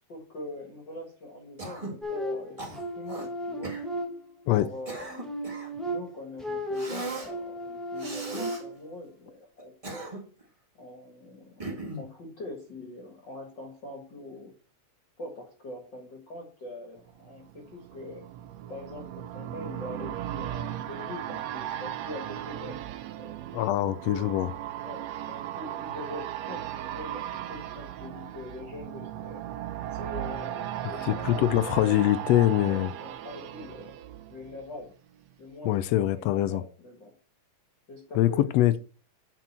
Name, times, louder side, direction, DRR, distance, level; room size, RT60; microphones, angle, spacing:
voice 1, 0.1-3.7 4.5-5.1 5.8-10.2 10.8-14.5 15.2-18.2 18.7-23.4 23.8-24.4 24.8-26.6 26.9-29.4 29.9-31.9 32.6-33.9 34.3-34.9 35.4-37.1 37.9-38.5, left 2 dB, 40° left, 2.2 m, -43 dB
Cough, 1.6-2.0 2.6-3.3 3.6-3.9 4.6-5.8 6.7-7.3 8.0-8.6 9.6-10.4 11.6-12.1, right 2 dB, 15° right, 1.4 m, -38 dB
sound 1, 2.0-4.6 5.0-8.9, equal, ahead, 0.6 m, -35 dB
sound 2, 17.1-34.9 35.2-35.3, right 11 dB, 75° right, 1.8 m, -37 dB
voice 2, 23.5-24.5 31.1-32.9 35.6-36.6 38.2-38.8, left 14 dB, 80° left, 1.5 m, -23 dB
8.0 x 6.1 x 4.3 m
omnidirectional pair, 3.4 m